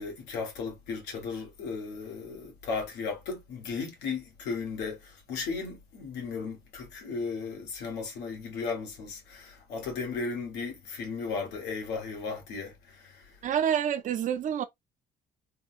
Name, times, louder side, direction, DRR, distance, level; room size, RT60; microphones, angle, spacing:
voice 1, 0.0-13.2, left 4 dB, 90° left, 1.4 m, -35 dB
voice 2, 13.4-14.6, right 9 dB, 50° right, 0.6 m, -27 dB
3.7 x 2.2 x 2.5 m
cardioid pair, 110°, 17 cm